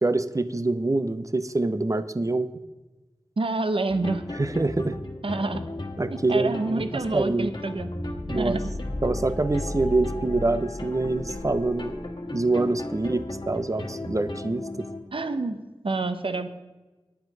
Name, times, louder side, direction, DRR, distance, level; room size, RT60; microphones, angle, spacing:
voice 1, 0.0-2.5 4.4-5.0 6.0-7.5 8.3-8.6 9.0-11.9 12.3-14.9, right 2 dB, 35° right, 13 dB, 0.7 m, -25 dB
voice 2, 3.4-4.3 5.2-5.6 6.1-7.9 8.4-8.6 15.1-15.6 15.8-16.5, right 3 dB, 75° right, 10 dB, 0.8 m, -27 dB
sound 1, 3.9-15.0, left 1 dB, 55° left, 1.5 m, -35 dB
9.7 x 9.0 x 5.3 m, 1.2 s
wide cardioid pair, 40°, 9 cm